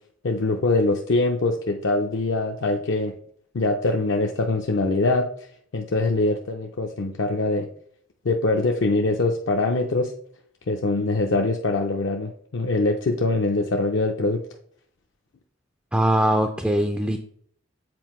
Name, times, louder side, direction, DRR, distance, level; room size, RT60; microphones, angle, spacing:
voice 1, 0.2-3.1 3.5-5.2 5.7-7.7 8.2-10.1 10.7-14.4, left 2 dB, 60° left, 2 dB, 0.5 m, -23 dB
voice 2, 15.9-17.2, right 1 dB, 5° right, 4 dB, 0.3 m, -21 dB
7.6 x 4.2 x 3.1 m, 0.62 s
head